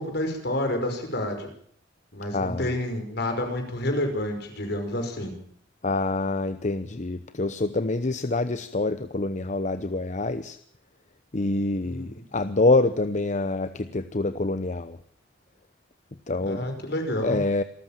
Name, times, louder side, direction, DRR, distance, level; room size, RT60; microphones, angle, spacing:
voice 1, 0.0-1.5 2.1-5.3 11.8-12.1 16.4-17.4, left 1 dB, 60° left, 5 dB, 5.4 m, -29 dB
voice 2, 2.3-2.7 5.8-10.6 11.3-15.0 16.3-16.6 17.2-17.6, left 2 dB, 40° left, 12 dB, 0.9 m, -26 dB
27.5 x 14.0 x 7.4 m, 0.62 s
head